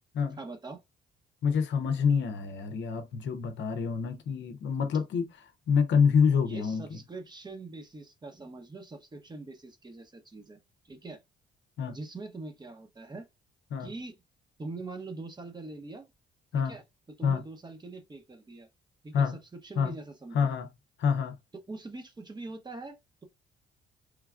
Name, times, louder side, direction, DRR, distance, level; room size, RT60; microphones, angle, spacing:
voice 1, 0.4-0.8 6.5-10.6 10.8-11.2 11.9-13.3 13.8-14.2 14.6-16.1 16.5-16.8 17.2-18.7 19.0-20.5 21.7-23.2, right 3 dB, 20° right, 0.8 m, -43 dB
voice 2, 1.4-5.3 5.7-7.0 11.8-11.9 13.7-13.9 16.5-16.8 17.2-17.4 19.1-19.4 19.8-19.9 20.3-20.7 21.0-21.4, left 6 dB, 70° left, 0.6 m, -27 dB
3.2 x 2.2 x 2.4 m
cardioid pair, 90°, 20 cm